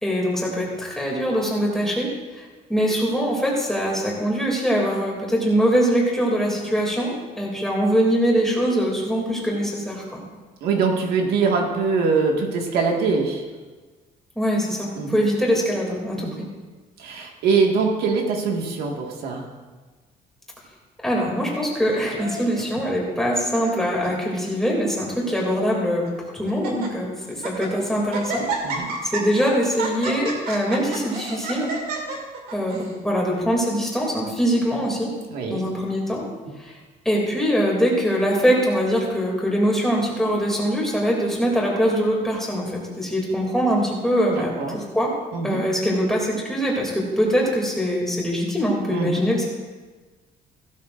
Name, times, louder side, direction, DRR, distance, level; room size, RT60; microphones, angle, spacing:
voice 1, 0.0-2.1 2.7-10.2 14.4-16.5 21.0-26.1 26.3-28.4 29.0-31.7 32.5-35.1 35.5-36.2 36.6-36.7 37.0-45.1 45.4-49.4, equal, 5° left, -3 dB, 2.7 m, -23 dB
voice 2, 10.6-13.5 14.9-15.2 16.2-16.4 17.0-19.5 28.6-28.9 35.3-35.6 44.3-44.8 45.3-45.6 48.9-49.2, right 4 dB, 85° right, 1 dB, 1.9 m, -23 dB
Laughter, 21.9-22.7 23.4-23.8 24.0-24.1 24.9-25.5 26.0-26.1 26.5-26.9 27.3-27.7 28.1-32.9, right 3 dB, 70° right, 2.2 m, -31 dB
16.0 x 12.5 x 2.6 m, 1.3 s
cardioid pair, 155°, 16 cm